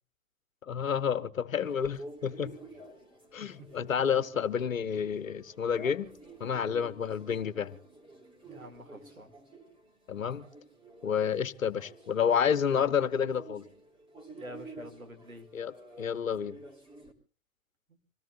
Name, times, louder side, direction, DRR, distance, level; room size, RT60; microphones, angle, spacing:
voice 1, 0.6-2.6 3.3-6.1 6.4-7.8 10.1-10.4 11.0-13.7 15.5-16.6, left 7 dB, 70° left, 1.1 m, -30 dB
sound 1, 1.6-17.1, right 2 dB, 10° right, 3.5 m, -51 dB
voice 2, 8.5-9.3 14.4-15.5, right 1 dB, 85° right, 3.0 m, -47 dB
26.0 x 17.5 x 2.7 m
figure-of-eight pair, 100°, 41 cm